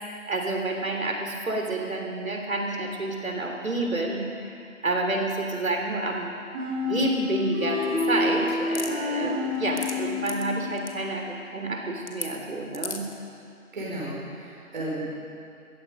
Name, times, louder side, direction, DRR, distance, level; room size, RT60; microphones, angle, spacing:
voice 1, 0.3-4.6 4.8-6.3 6.8-13.1, right 2 dB, 65° right, 1 dB, 3.4 m, -29 dB
sound 1, 6.5-11.2, left 4 dB, 5° right, 1.8 m, -29 dB
sound 2, 8.7-8.9 9.5-9.9 10.3-10.4 10.8-10.9 12.1-12.3 12.7-13.1, left 4 dB, 50° left, 1.6 m, -34 dB
voice 2, 13.7-15.1, right 1 dB, 30° right, -6 dB, 5.3 m, -33 dB
18.0 x 14.5 x 5.3 m, 2.5 s
hypercardioid pair, 175°, 44 cm